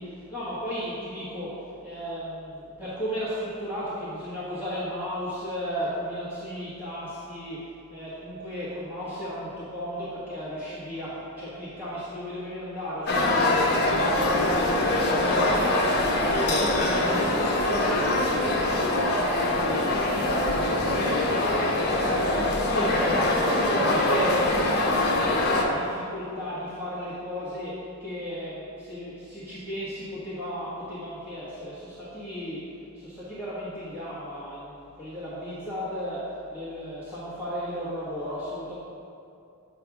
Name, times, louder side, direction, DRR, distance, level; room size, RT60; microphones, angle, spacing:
voice 1, 0.0-7.6 7.9-14.4 14.7-22.9 23.2-24.8 25.1-27.7 28.0-32.6 32.9-36.2 36.5-38.7, equal, 5° right, -12 dB, 1.4 m, -35 dB
sound 1, 13.1-25.6, left 2 dB, 45° left, 0.9 m, -23 dB
8.5 x 3.3 x 5.9 m, 2.6 s
head